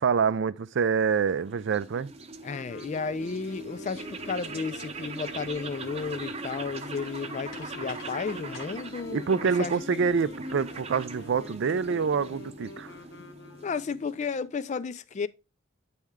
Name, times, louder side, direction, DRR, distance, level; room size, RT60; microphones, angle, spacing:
voice 1, 0.0-2.1 9.1-12.9, right 5 dB, 65° right, 0.4 m, -26 dB
sound 1, 0.9-14.3, right 3 dB, 30° right, 0.8 m, -41 dB
Wind instrument woodwind instrument, 2.4-14.1, left 2 dB, 60° left, 1.0 m, -47 dB
voice 2, 2.4-9.7 13.6-15.3, left 5 dB, 35° left, 0.4 m, -33 dB
sound 2, 4.0-12.4, left 3 dB, 80° left, 1.8 m, -55 dB
9.2 x 4.3 x 3.6 m
head